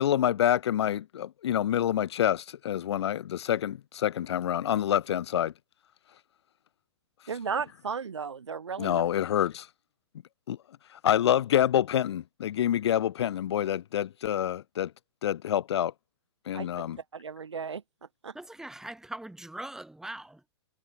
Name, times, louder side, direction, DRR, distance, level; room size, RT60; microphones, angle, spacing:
voice 1, 0.0-5.5 8.8-9.7 10.5-10.6 10.9-14.9 15.2-15.9 16.5-17.0, left 10 dB, 70° left, 0.4 m, -27 dB
voice 2, 7.3-9.0 16.5-16.7 17.1-17.8 18.2-18.3, right 6 dB, 85° right, 2.6 m, -34 dB
voice 3, 18.3-20.4, right 1 dB, 5° right, 6.0 m, -41 dB
hypercardioid pair, 125°, 15 cm